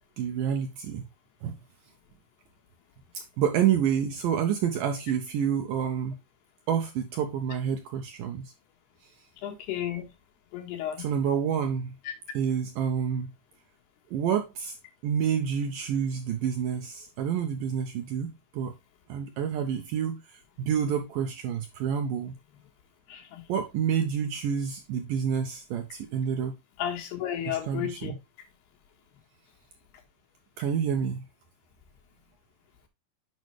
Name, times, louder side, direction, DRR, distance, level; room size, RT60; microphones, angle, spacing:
voice 1, 0.2-1.0 1.4-1.5 3.1-6.2 6.7-8.5 11.0-11.9 12.3-13.3 14.1-14.8 15.0-18.7 19.1-22.3 23.5-26.6 27.5-28.2 30.6-31.2, right 8 dB, 80° right, 2.0 m, -28 dB
voice 2, 9.4-10.1 10.5-11.1 23.1-23.4 26.8-28.1, left 10 dB, 80° left, 3.5 m, -33 dB
8.3 x 5.4 x 3.2 m
omnidirectional pair, 4.6 m